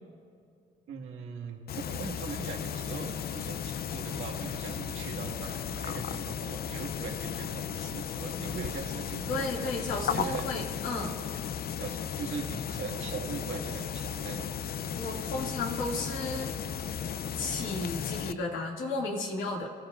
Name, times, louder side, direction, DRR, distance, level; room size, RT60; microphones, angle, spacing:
voice 1, 0.9-9.5 10.1-10.5 11.8-14.5, right 6 dB, 80° right, 1 dB, 1.6 m, -40 dB
sound 1, 1.7-18.3, left 8 dB, 50° left, 0.5 m, -35 dB
voice 2, 9.3-11.2 15.0-16.5 17.4-19.7, left 2 dB, 80° left, 0 dB, 2.3 m, -33 dB
30.0 x 14.5 x 2.5 m, 2.5 s
cardioid pair, 90°, 20 cm